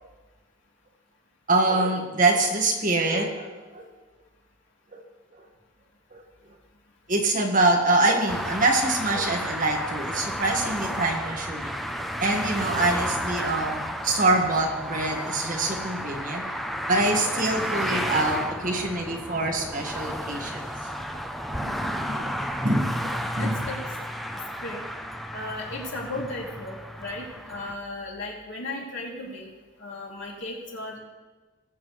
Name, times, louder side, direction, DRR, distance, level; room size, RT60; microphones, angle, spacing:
voice 1, 1.5-3.8 4.9-5.0 6.1-6.2 7.1-16.4 16.9-20.6 21.5-22.4 22.6-23.6, right 2 dB, 45° right, 1 dB, 1.5 m, -25 dB
sound 1, 8.3-27.7, equal, ahead, 0.5 m, -32 dB
sound 2, 8.9-21.9, right 2 dB, 70° right, 2.7 m, -46 dB
voice 2, 23.4-23.8 24.6-24.8 25.3-29.5 29.8-31.0, left 2 dB, 85° left, -3 dB, 2.7 m, -35 dB
19.5 x 7.5 x 3.2 m, 1.3 s
head